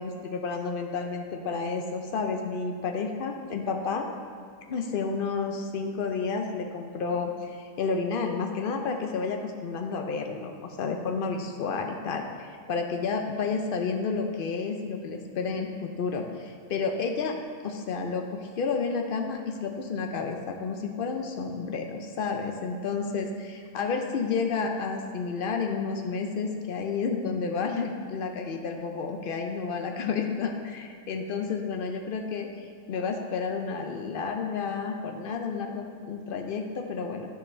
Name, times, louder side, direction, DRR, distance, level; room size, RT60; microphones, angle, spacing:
voice 1, 0.0-4.1 4.7-17.3 17.6-37.3, left 5 dB, 80° left, 3 dB, 0.5 m, -31 dB
10.0 x 6.0 x 3.2 m, 2.2 s
omnidirectional pair, 1.5 m